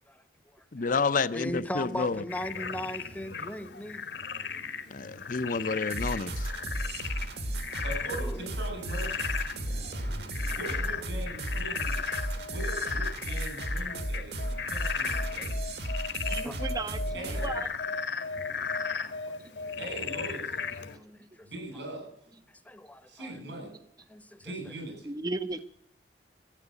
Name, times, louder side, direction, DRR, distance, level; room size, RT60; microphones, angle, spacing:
voice 1, 0.7-2.2 4.9-6.5, left 4 dB, 50° left, 0.6 m, -29 dB
voice 2, 1.3-4.1 4.5-4.6 6.5-6.7 8.1-8.5 10.0-10.4 13.9-14.0 16.3-16.6 18.6-18.7 19.0-19.8 20.9-21.5 22.6-23.5 24.1-24.5, left 1 dB, 10° left, 0.9 m, -39 dB
Frog, 2.3-21.0, left 5 dB, 75° left, 1.8 m, -36 dB
sound 1, 5.9-17.6, right 1 dB, 65° right, 1.8 m, -34 dB
voice 3, 7.8-9.3 10.5-15.8 17.1-17.5 19.8-20.6 21.4-22.1 23.1-23.7 24.4-25.1, right 2 dB, 80° right, 7.7 m, -41 dB
voice 4, 16.3-17.0 17.4-17.7 25.1-25.6, right 3 dB, 20° right, 0.6 m, -34 dB
13.5 x 10.0 x 8.3 m
head